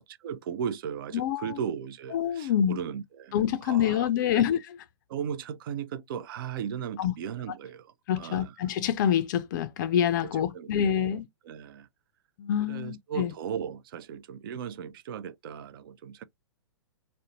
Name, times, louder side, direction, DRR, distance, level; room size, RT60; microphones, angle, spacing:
voice 1, 0.0-3.4 3.6-4.5 5.1-8.6 10.2-11.9 12.6-16.2, right 8 dB, 50° right, 0.4 m, -37 dB
voice 2, 1.1-1.6 2.1-2.8 3.3-4.6 7.0-7.1 8.1-11.3 12.4-13.3, left 9 dB, 45° left, 0.4 m, -26 dB
2.5 x 2.1 x 2.8 m
hypercardioid pair, 115°, 14 cm